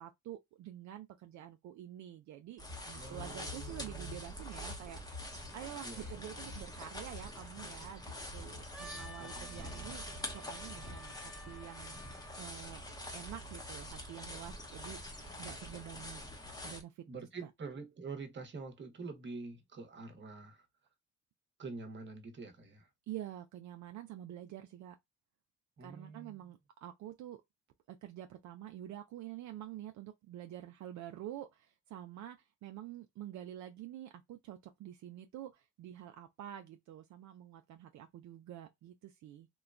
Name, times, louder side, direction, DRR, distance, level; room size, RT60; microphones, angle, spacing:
voice 1, 0.0-5.2 5.5-11.9 12.4-12.8 13.1-15.0 15.4-16.2 16.6-17.0 23.1-25.0 25.8-27.4 27.9-39.5, right 12 dB, 70° right, 0.5 m, -48 dB
sound 1, 2.6-16.8, left 1 dB, 15° left, 0.8 m, -45 dB
voice 2, 2.9-4.2 5.8-6.2 9.2-10.0 17.1-20.7 21.6-22.9 25.8-26.4, right 4 dB, 40° right, 0.9 m, -47 dB
Wind instrument woodwind instrument, 8.7-12.6, equal, 5° right, 0.4 m, -53 dB
3.0 x 2.2 x 2.4 m
cardioid pair, 90°, 30 cm